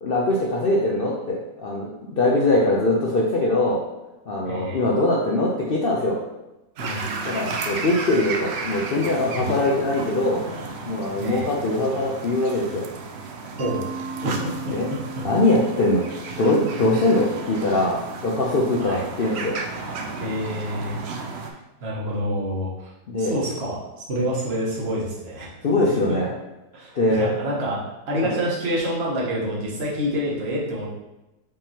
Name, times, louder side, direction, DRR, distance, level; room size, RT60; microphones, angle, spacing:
voice 1, 0.0-3.8 4.3-6.2 7.3-10.4 10.9-12.8 14.2-14.4 14.7-14.9 15.2-16.1 16.4-19.5 23.1-23.4 25.6-26.3 27.0-27.3 28.2-28.3, left 2 dB, 65° left, -3 dB, 0.5 m, -22 dB
voice 2, 4.4-4.8 6.8-7.0 11.2-11.5 13.6-13.8 14.4-14.5 18.8-19.0 20.2-21.0 21.4-22.9 23.2-25.5 26.7-27.8 28.1-30.9, equal, 45° right, -4 dB, 1.3 m, -27 dB
sound 1, 6.8-21.5, right 4 dB, 70° right, 0.6 m, -33 dB
Mallet percussion, 13.6-18.4, right 4 dB, 85° right, 1.4 m, -38 dB
5.3 x 3.5 x 2.8 m, 0.99 s
omnidirectional pair, 1.7 m